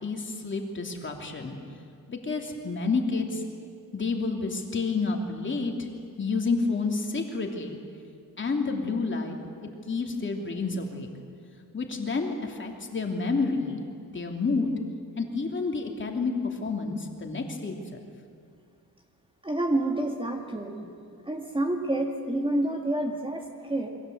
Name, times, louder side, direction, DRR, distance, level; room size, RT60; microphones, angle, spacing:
voice 1, 0.0-1.6 2.1-3.4 3.9-5.9 6.2-7.8 8.4-9.4 9.9-11.1 11.7-13.8 14.1-14.7 15.2-16.3 16.6-17.8, left 4 dB, 30° left, 2 dB, 3.1 m, -29 dB
voice 2, 19.4-20.9 21.3-23.9, right 1 dB, 15° right, 2 dB, 2.2 m, -28 dB
28.0 x 22.5 x 8.0 m, 2.4 s
cardioid pair, 130°, 37 cm